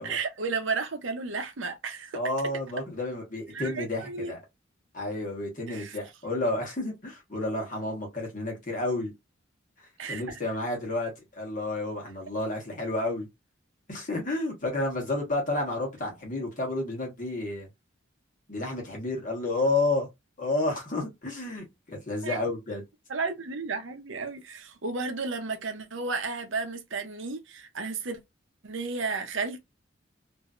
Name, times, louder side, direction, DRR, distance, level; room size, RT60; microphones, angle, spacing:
voice 1, 0.0-2.2 3.5-4.3 5.7-6.0 10.0-10.4 22.2-22.4 23.1-28.2 28.6-29.6, right 4 dB, 70° right, 0.7 m, -33 dB
voice 2, 2.1-4.4 4.9-9.1 10.1-13.3 13.9-17.7 18.5-20.1 20.4-22.8, left 2 dB, 40° left, 1.3 m, -31 dB
3.0 x 2.7 x 2.4 m
head